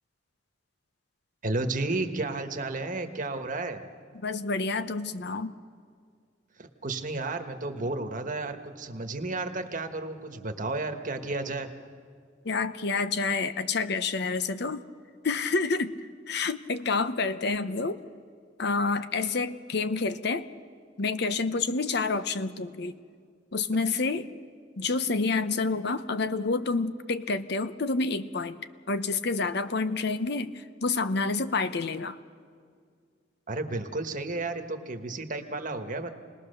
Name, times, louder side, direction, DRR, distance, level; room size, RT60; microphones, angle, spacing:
voice 1, 1.4-3.8 6.6-11.7 33.5-36.1, right 2 dB, 45° right, 6 dB, 1.4 m, -32 dB
voice 2, 4.1-5.5 12.4-14.8 15.2-15.9 16.3-18.0 18.6-20.5 21.0-22.9 23.5-24.3 24.8-28.6 28.9-32.2, left 4 dB, 60° left, 12 dB, 0.8 m, -28 dB
28.5 x 20.0 x 6.7 m, 2.1 s
head